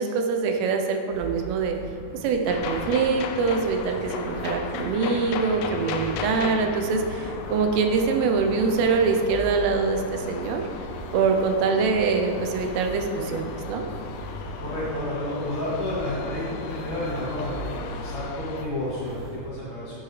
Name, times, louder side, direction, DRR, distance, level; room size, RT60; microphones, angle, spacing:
voice 1, 0.0-1.8 2.2-10.6 11.1-13.9, right 4 dB, 85° right, 4 dB, 2.8 m, -24 dB
sound 1, 1.1-19.5, right 2 dB, 50° right, 3.6 m, -40 dB
sound 2, 2.5-18.6, left 5 dB, 80° left, 2.2 m, -36 dB
voice 2, 14.6-17.6 17.9-20.0, left 1 dB, 45° left, -9 dB, 2.4 m, -31 dB
10.5 x 7.7 x 3.2 m, 2.2 s
omnidirectional pair, 4.8 m